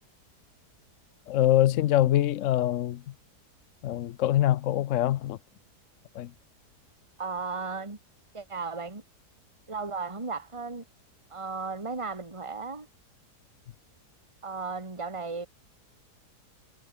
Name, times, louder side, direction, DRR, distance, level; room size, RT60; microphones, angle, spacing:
voice 1, 1.3-3.1 3.8-5.4 6.1-6.3, left 13 dB, 65° left, 0.8 m, -24 dB
voice 2, 7.2-8.0 8.3-9.0 9.7-10.8 11.3-12.9 14.4-15.5, right 4 dB, 20° right, 2.4 m, -35 dB
omnidirectional pair, 1.7 m